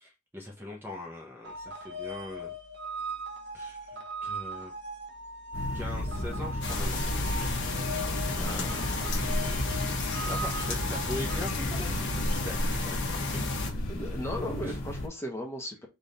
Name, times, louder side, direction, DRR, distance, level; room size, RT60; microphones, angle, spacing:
voice 1, 0.0-2.5 3.5-4.7 5.7-7.0 8.8-9.5 10.2-12.8 13.3-13.5 14.7-14.8, left 1 dB, 10° right, -1 dB, 0.9 m, -41 dB
sound 1, 1.4-11.4, right 1 dB, 55° right, 1.0 m, -39 dB
sound 2, 5.5-15.1, left 1 dB, 70° left, 1.4 m, -33 dB
sound 3, 6.6-13.7, left 3 dB, 55° left, 1.3 m, -33 dB
voice 2, 8.3-8.9 13.9-15.9, equal, 10° left, 1 dB, 1.0 m, -37 dB
3.6 x 3.5 x 4.1 m, 0.25 s
head